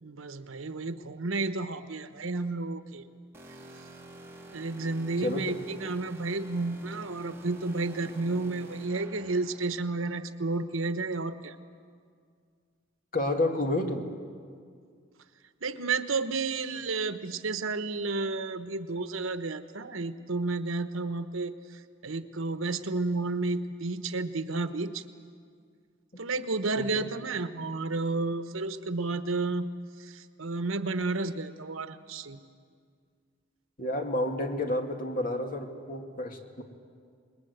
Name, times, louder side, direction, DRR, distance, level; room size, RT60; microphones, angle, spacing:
voice 1, 0.0-3.0 4.5-11.6 15.6-21.5 22.0-25.0 26.2-29.7 30.0-32.4, right 3 dB, 85° right, 10 dB, 1.1 m, -31 dB
sound 1, 3.3-9.8, right 1 dB, 10° right, 2.9 m, -49 dB
voice 2, 5.2-5.6 13.1-14.1 26.8-27.1 33.8-36.6, left 1 dB, 45° left, 4 dB, 2.1 m, -30 dB
28.0 x 20.5 x 8.1 m, 2.1 s
head